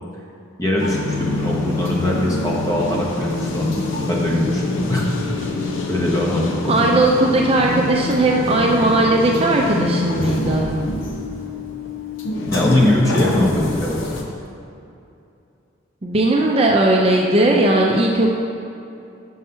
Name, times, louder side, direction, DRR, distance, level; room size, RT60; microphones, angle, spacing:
voice 1, 0.6-3.8 4.1-4.6 4.9-5.1 5.9-6.8 12.5-14.1, left 1 dB, 15° left, -3 dB, 0.9 m, -21 dB
sound 1, 0.8-14.2, left 2 dB, 75° left, 0.8 m, -25 dB
voice 2, 6.7-10.7 16.0-18.3, right 2 dB, 30° right, -1 dB, 0.4 m, -17 dB
5.9 x 5.5 x 5.5 m, 2.7 s
head